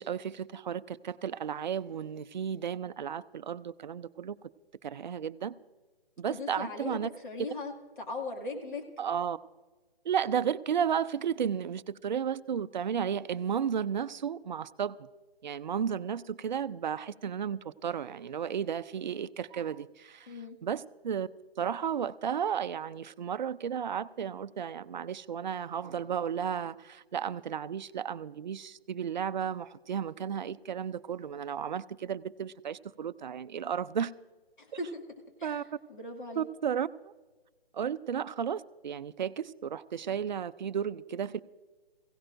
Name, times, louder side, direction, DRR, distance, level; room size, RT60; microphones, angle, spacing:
voice 1, 0.0-4.4 4.8-5.5 6.2-7.1 9.0-9.4 10.0-15.1 15.4-20.3 20.6-21.3 21.6-34.1 35.4-35.8 36.4-37.1 37.7-41.4, right 8 dB, 50° right, 0.4 m, -33 dB
voice 2, 6.3-8.8 20.3-20.6 34.6-35.0 35.4-35.6 35.9-36.5, left 2 dB, 55° left, 2.3 m, -39 dB
21.5 x 16.5 x 2.6 m
hypercardioid pair, 160°, 30 cm